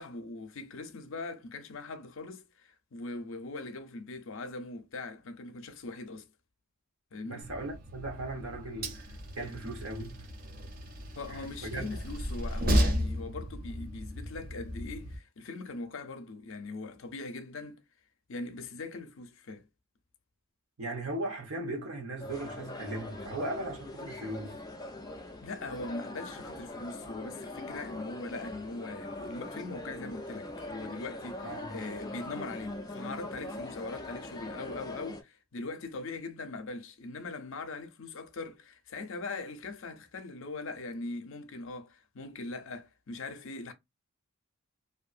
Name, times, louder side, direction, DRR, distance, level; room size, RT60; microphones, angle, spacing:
voice 1, 0.0-6.3 7.1-7.5 11.1-17.8 18.3-19.6 25.4-43.7, left 3 dB, 60° left, 0.6 m, -41 dB
voice 2, 7.2-10.3 11.3-11.9 20.8-24.6 31.4-31.8, right 1 dB, 70° right, 1.1 m, -38 dB
Train, 7.4-15.2, equal, 40° right, 0.5 m, -34 dB
sound 1, 22.2-35.2, left 1 dB, 15° left, 0.4 m, -42 dB
2.7 x 2.5 x 2.5 m
head